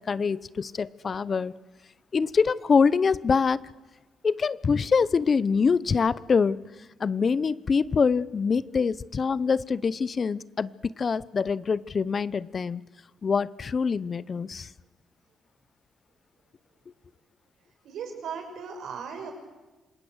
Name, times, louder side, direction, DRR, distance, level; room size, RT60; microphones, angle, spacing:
voice 1, 0.0-1.5 2.1-3.6 4.2-6.6 7.0-12.8 13.2-14.7, left 5 dB, 45° left, 19 dB, 0.7 m, -25 dB
voice 2, 17.8-19.3, right 6 dB, 80° right, 4 dB, 6.1 m, -37 dB
26.5 x 20.0 x 8.1 m, 1.2 s
cardioid pair, 85°, 0 cm